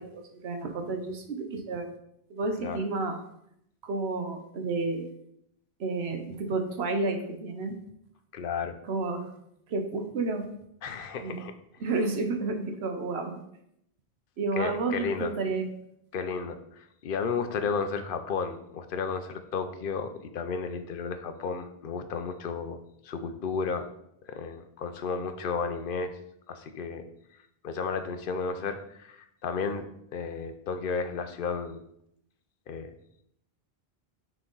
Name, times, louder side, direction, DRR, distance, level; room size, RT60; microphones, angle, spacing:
voice 1, 0.0-1.9 2.3-3.2 3.8-5.1 5.8-7.7 8.8-9.2 9.7-10.4 11.2-11.4 11.8-13.4 14.4-15.6, right 3 dB, 80° right, 5 dB, 1.0 m, -31 dB
voice 2, 8.3-8.7 10.8-11.5 14.6-15.3 16.1-22.8 23.0-23.9 24.3-26.1 26.5-27.0 27.6-29.9 30.1-31.8 32.7-32.9, left 5 dB, 60° left, 9 dB, 0.7 m, -33 dB
6.0 x 4.3 x 3.8 m, 0.76 s
omnidirectional pair, 1.1 m